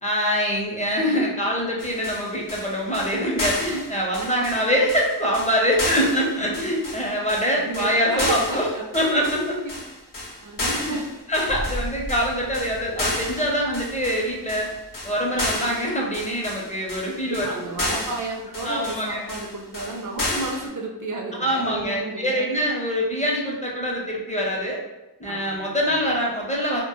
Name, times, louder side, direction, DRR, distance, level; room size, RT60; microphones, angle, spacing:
voice 1, 0.0-9.6 10.6-11.0 11.3-14.7 15.0-17.5 18.6-19.2 21.4-24.8 25.2-26.8, equal, 20° left, -3 dB, 0.6 m, -24 dB
sound 1, 1.8-20.7, left 1 dB, 55° left, 0.7 m, -32 dB
voice 2, 7.6-8.9 9.6-9.7 10.4-11.0 17.2-22.5 25.2-26.1, right 2 dB, 50° right, 0 dB, 0.4 m, -32 dB
sound 2, 11.4-15.7, equal, 90° left, 0.8 m, -37 dB
2.1 x 2.1 x 2.9 m, 0.97 s
wide cardioid pair, 45°, 40 cm